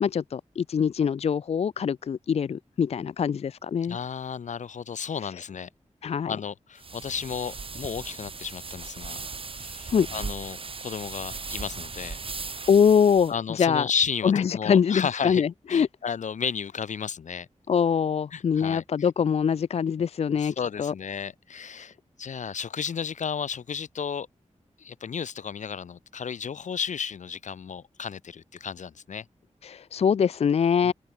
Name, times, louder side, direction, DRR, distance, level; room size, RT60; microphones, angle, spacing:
voice 1, 0.0-4.0 6.0-6.3 9.9-10.1 12.7-13.9 14.2-15.9 17.7-20.9 29.6-30.9, left 7 dB, 60° left, 0.4 m, -23 dB
voice 2, 3.9-5.7 6.2-9.2 9.5-12.2 13.3-15.4 15.7-17.5 18.3-18.8 20.0-24.3 24.8-29.3 30.8-30.9, left 7 dB, 85° left, 0.9 m, -33 dB
sound 1, 6.8-13.3, right 4 dB, 50° right, 1.7 m, -38 dB
open air
wide cardioid pair, 115°, 12 cm